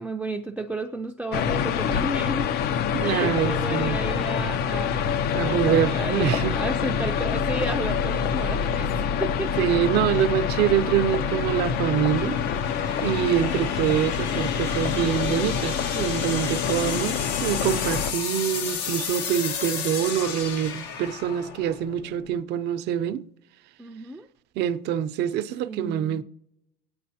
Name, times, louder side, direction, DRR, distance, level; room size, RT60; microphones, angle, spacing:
voice 1, 0.0-2.5 3.0-9.6 23.8-24.3 25.6-26.2, right 2 dB, 5° right, 0.5 m, -33 dB
sound 1, 1.3-18.1, left 7 dB, 60° left, 0.7 m, -26 dB
voice 2, 2.9-4.0 5.3-6.5 9.6-12.4 13.0-23.2 24.6-26.2, right 10 dB, 65° right, 0.6 m, -25 dB
Sweep (Flanging and Phasing), 7.5-22.4, left 6 dB, 80° left, 1.4 m, -34 dB
27.5 x 9.5 x 2.8 m
cardioid pair, 110°, 18 cm